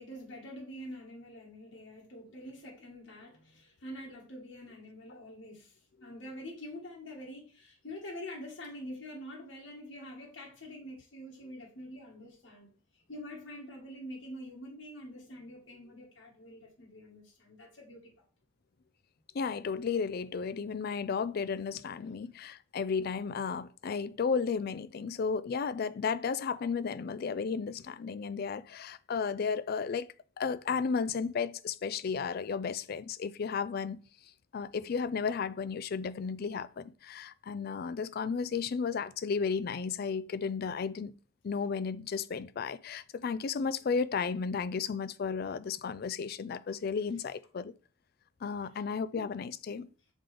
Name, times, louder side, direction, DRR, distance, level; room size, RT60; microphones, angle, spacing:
voice 1, 0.0-12.7 12.9-18.1 22.0-22.3 49.1-49.3, left 1 dB, 80° left, 1.6 m, -46 dB
voice 2, 19.3-30.1 30.4-34.0 34.5-41.2 41.4-47.7 48.4-49.9, left 5 dB, 55° left, 0.4 m, -33 dB
7.2 x 3.8 x 3.4 m
head